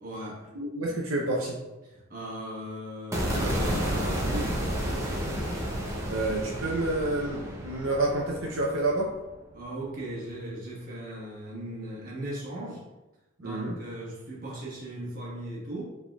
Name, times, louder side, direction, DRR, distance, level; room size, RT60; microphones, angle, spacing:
voice 1, 0.0-0.5 1.8-4.7 9.5-12.8 13.4-15.8, right 1 dB, 40° right, -5 dB, 1.2 m, -38 dB
voice 2, 0.5-1.6 6.1-9.1 13.4-13.8, right 2 dB, 80° right, -2 dB, 0.6 m, -29 dB
sound 1, 3.1-9.3, equal, 15° right, 0.6 m, -31 dB
4.8 x 3.5 x 2.3 m, 1.1 s
head